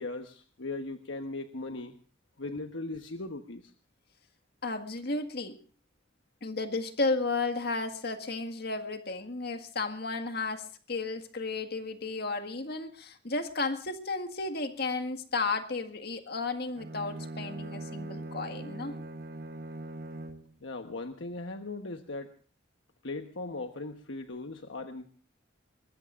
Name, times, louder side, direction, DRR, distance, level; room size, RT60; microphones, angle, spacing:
voice 1, 0.0-1.9 2.4-3.7 20.6-22.3 23.0-25.1, left 2 dB, 75° left, 6 dB, 1.2 m, -38 dB
voice 2, 4.6-5.6 6.4-19.0, left 3 dB, 55° left, 7 dB, 1.8 m, -33 dB
Bowed string instrument, 16.7-20.5, right 2 dB, 50° right, 1.2 m, -41 dB
22.5 x 21.0 x 2.5 m, 0.41 s
head